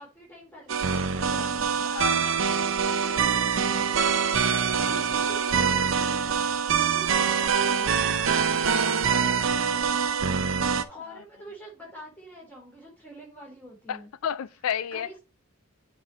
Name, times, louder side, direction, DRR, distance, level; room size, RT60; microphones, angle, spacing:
voice 1, 0.0-1.9 10.9-14.1 14.9-15.2, equal, 10° left, 3.2 m, -47 dB
sound 1, 0.7-10.8, right 6 dB, 65° right, 0.6 m, -24 dB
voice 2, 1.9-2.5 4.5-5.0 8.6-8.9 11.1-11.2 13.9-15.1, left 8 dB, 80° left, 0.4 m, -33 dB
9.3 x 4.4 x 3.0 m
head